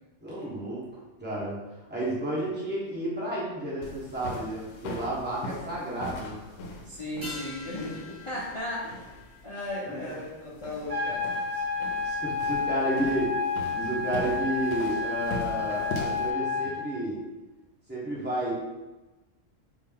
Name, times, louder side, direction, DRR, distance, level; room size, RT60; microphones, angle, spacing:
voice 1, 0.2-0.8 1.2-1.6 1.9-6.4 10.0-10.1 11.0-11.1 11.5-13.4 13.7-17.2 17.9-18.5, right 1 dB, 10° right, -8 dB, 1.3 m, -31 dB
sound 1, 3.8-16.3, left 2 dB, 80° left, 0.9 m, -41 dB
voice 2, 6.8-9.0 9.4-11.2, left 1 dB, 35° left, -7 dB, 0.5 m, -36 dB
sound 2, 7.2-11.9 12.2-12.3, left 2 dB, 45° right, 1.1 m, -46 dB
sound 3, 10.9-16.9, left 4 dB, 60° right, 0.8 m, -30 dB
4.2 x 2.7 x 3.6 m, 1.1 s
omnidirectional pair, 1.3 m